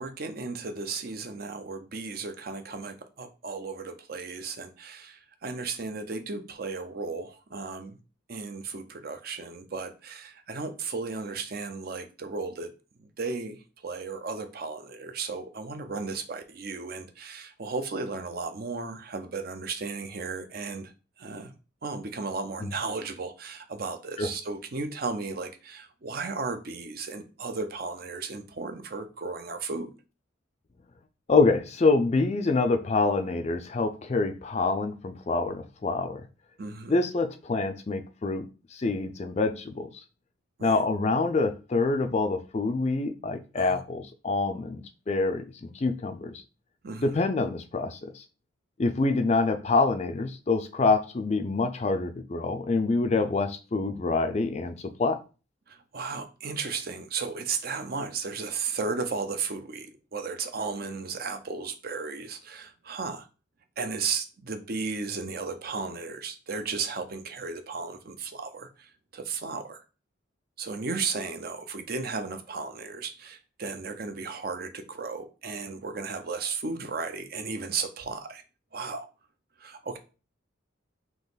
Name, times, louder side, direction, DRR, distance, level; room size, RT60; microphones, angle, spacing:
voice 1, 0.0-8.0 8.3-12.7 13.0-20.9 21.2-21.5 21.8-29.9 36.6-37.0 40.6-40.8 43.6-43.8 46.8-47.2 55.7-63.3 63.8-69.8 70.6-78.4 78.7-79.1 79.6-80.0, right 4 dB, 50° right, 0.6 m, -35 dB
voice 2, 31.3-36.2 36.9-38.5 38.7-39.9 40.6-46.3 47.0-48.2 48.8-55.2, left 3 dB, 35° left, 0.4 m, -26 dB
3.9 x 2.9 x 3.9 m
head